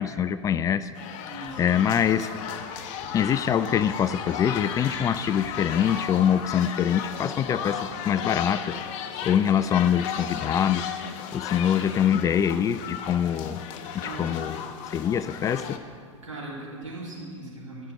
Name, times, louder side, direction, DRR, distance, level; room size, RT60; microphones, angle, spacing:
voice 1, 0.0-1.1 1.6-2.3 3.1-10.9 11.3-13.6 14.2-14.6 14.9-15.8, left 9 dB, 20° left, 14 dB, 0.3 m, -24 dB
sound 1, 0.9-15.8, left 8 dB, 45° left, 0.9 m, -35 dB
voice 2, 1.3-2.1 14.0-14.4 16.2-17.9, right 2 dB, 90° right, -4 dB, 3.3 m, -39 dB
sound 2, 1.4-6.1 6.5-6.6 7.1-8.5 8.9-9.0 9.5-9.6 9.8-11.3 11.8-11.9 12.1-12.7 13.2-13.4 14.1-14.2 14.5-15.6 15.9-16.3 16.5-17.0, left 1 dB, ahead, 2.9 m, -45 dB
12.0 x 6.6 x 7.5 m, 2.1 s
hypercardioid pair, 100°, 16 cm